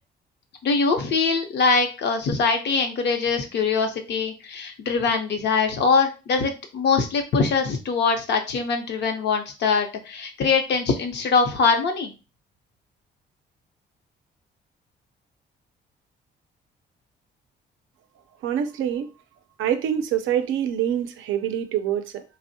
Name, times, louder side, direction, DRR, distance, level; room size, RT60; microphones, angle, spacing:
voice 1, 0.6-12.1, left 4 dB, 60° left, 4 dB, 0.7 m, -23 dB
voice 2, 18.4-19.1 19.6-22.2, right 9 dB, 85° right, 9 dB, 0.5 m, -25 dB
3.4 x 2.0 x 2.6 m, 0.31 s
cardioid pair, 90°, 20 cm